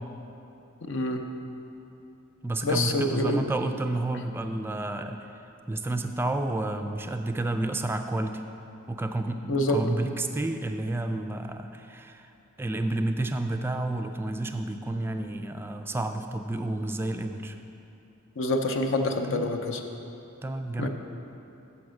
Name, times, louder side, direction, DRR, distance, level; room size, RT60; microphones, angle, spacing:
voice 1, 0.8-1.2 2.6-3.4 9.5-9.9 18.4-19.8 20.8-20.9, left 1 dB, 65° left, 5 dB, 0.6 m, -26 dB
voice 2, 2.4-5.3 5.7-8.4 8.9-12.2 12.6-17.6 19.3-19.5 20.4-20.9, right 2 dB, 10° right, 6 dB, 0.3 m, -30 dB
7.1 x 6.0 x 6.3 m, 2.8 s
head